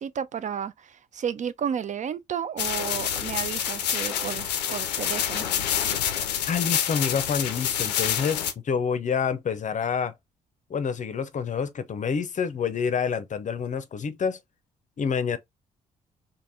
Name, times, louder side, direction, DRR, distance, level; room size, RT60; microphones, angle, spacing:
voice 1, 0.0-5.5, right 8 dB, 35° right, 0.4 m, -32 dB
sound 1, 2.6-8.5, left 9 dB, 85° left, 0.4 m, -27 dB
voice 2, 6.5-10.1 10.7-14.4 15.0-15.4, left 6 dB, 40° left, 0.6 m, -27 dB
3.3 x 2.1 x 3.9 m
figure-of-eight pair, 40°, 20 cm